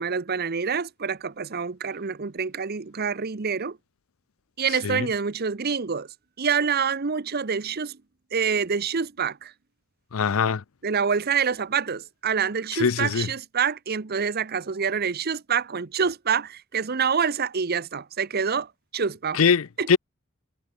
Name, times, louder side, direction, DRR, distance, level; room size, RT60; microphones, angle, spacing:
voice 1, 0.0-3.8 4.6-6.1 6.4-8.0 8.3-9.5 10.8-19.4 19.8-20.0, right 6 dB, 50° right, 0.8 m, -26 dB
voice 2, 10.1-10.6 12.8-13.3 19.3-20.0, left 6 dB, 90° left, 0.6 m, -22 dB
head